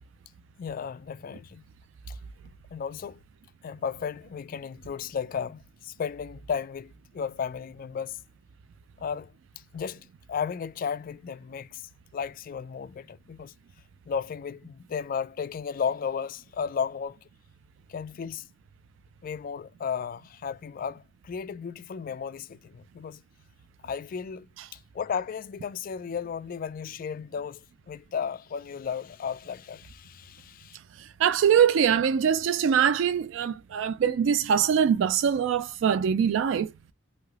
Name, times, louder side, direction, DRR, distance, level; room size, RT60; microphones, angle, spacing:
voice 1, 0.6-1.6 2.1-2.2 2.7-3.2 3.6-8.2 9.0-9.3 9.7-13.5 14.1-17.3 17.9-18.5 19.2-23.2 23.8-30.8, left 7 dB, 45° left, 0.3 m, -34 dB
voice 2, 31.0-36.7, right 8 dB, 80° right, 0.3 m, -23 dB
3.2 x 2.7 x 2.3 m
head